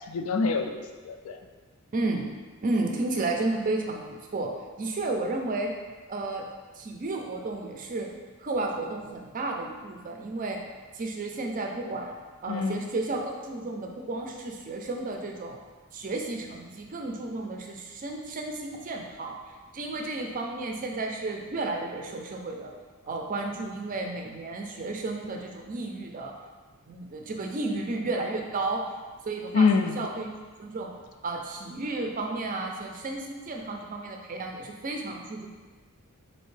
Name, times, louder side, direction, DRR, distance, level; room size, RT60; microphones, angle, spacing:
voice 1, 0.1-1.4 12.5-12.8 29.5-30.0, left 4 dB, 75° left, 7 dB, 0.3 m, -25 dB
voice 2, 1.9-2.3 2.6-4.5 4.8-5.7 6.1-6.4 6.7-8.1 8.4-10.6 10.9-12.1 12.4-15.6 15.9-19.4 19.7-22.7 23.0-26.3 26.9-28.8 29.2-30.3 30.6-30.9 31.2-35.5, right 2 dB, 40° right, 2 dB, 0.4 m, -32 dB
4.3 x 2.7 x 3.2 m, 1.4 s
head